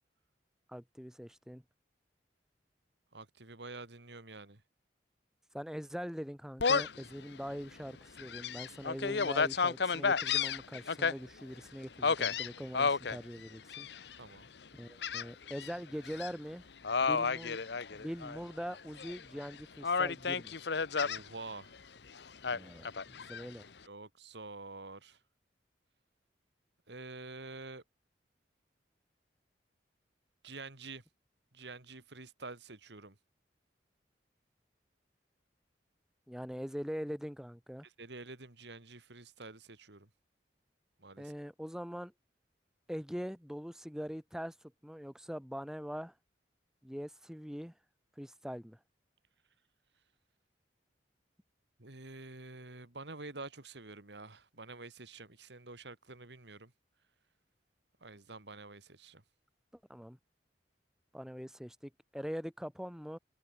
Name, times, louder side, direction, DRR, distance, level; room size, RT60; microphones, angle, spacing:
voice 1, 0.7-1.6 5.5-13.9 14.7-16.6 17.0-17.6 17.9-20.5 22.5-23.7 36.3-37.9 41.2-42.1 42.9-44.5 44.8-46.1 46.8-47.7 48.2-48.8 59.9-60.2 61.1-63.2, equal, 5° right, 2.2 m, -42 dB
voice 2, 3.1-4.6 14.2-14.5 17.1-17.2 21.0-21.8 23.8-25.2 26.9-27.8 30.4-31.0 31.5-33.2 37.8-40.1 41.0-41.3 51.8-56.7 58.0-59.2, right 3 dB, 75° right, 2.5 m, -48 dB
Gull seagull, 6.6-7.0 7.5-7.6 8.2-11.1 12.0-13.2 13.7-14.2 15.0-15.7 16.0-16.3 16.8-18.4 18.7-19.5 19.8-21.2 22.4-23.4, left 5 dB, 70° left, 0.9 m, -32 dB
head